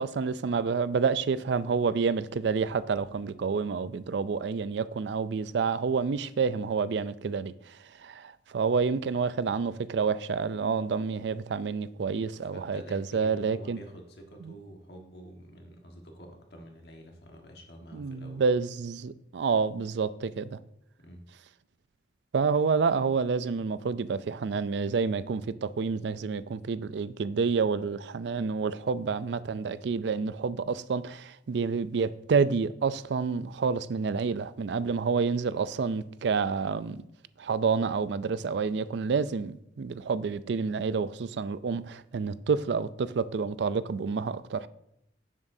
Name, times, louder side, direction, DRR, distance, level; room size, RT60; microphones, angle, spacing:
voice 1, 0.0-7.8 8.0-13.8 14.4-14.5 17.9-20.6 22.3-37.0 37.4-44.7, right 5 dB, 70° right, 0.4 m, -29 dB
voice 2, 12.4-18.4 21.0-21.2, equal, 60° left, 1.5 m, -48 dB
10.0 x 7.3 x 2.7 m
head